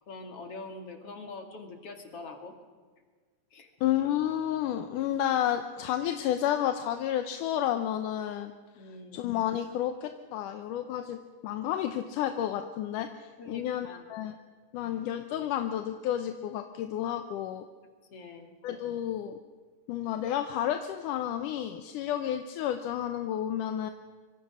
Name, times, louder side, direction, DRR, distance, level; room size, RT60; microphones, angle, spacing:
voice 1, 0.1-2.5 3.5-3.7 8.8-9.3 13.4-14.1 18.1-18.5, left 3 dB, 50° left, 4 dB, 3.1 m, -44 dB
voice 2, 3.8-8.5 9.1-11.2 11.4-14.4 14.7-17.7 18.6-19.4 19.9-23.9, left 11 dB, 80° left, 7 dB, 2.4 m, -31 dB
25.0 x 25.0 x 6.3 m, 1.5 s
omnidirectional pair, 3.7 m